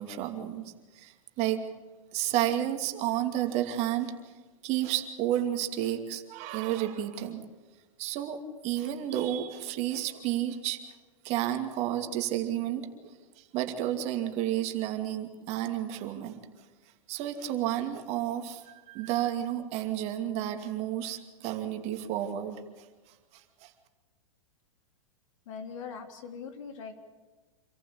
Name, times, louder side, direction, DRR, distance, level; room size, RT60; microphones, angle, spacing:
voice 1, 0.0-1.6 2.1-4.3 4.6-7.4 8.0-10.8 11.2-16.4 17.1-22.9 23.3-23.7, right 12 dB, 40° right, 6 dB, 2.6 m, -31 dB
voice 2, 25.4-26.9, left 6 dB, 65° left, 6 dB, 3.4 m, -41 dB
27.0 x 14.5 x 8.5 m, 1.3 s
hypercardioid pair, 130°, 18 cm